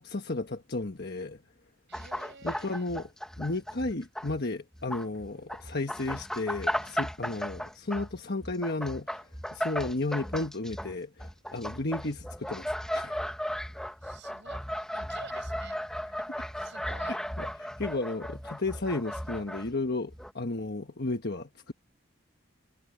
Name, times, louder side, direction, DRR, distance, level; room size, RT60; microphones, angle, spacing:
voice 1, 0.0-1.4 2.4-3.1 3.4-13.2 17.1-21.7, left 2 dB, 50° left, 1.3 m, -33 dB
sound 1, 1.9-4.4 4.7-19.7 20.1-20.3, equal, 5° left, 1.4 m, -36 dB
voice 2, 1.9-2.9 6.8-7.0 14.0-16.1 16.6-17.2, right 4 dB, 55° right, 7.2 m, -50 dB
head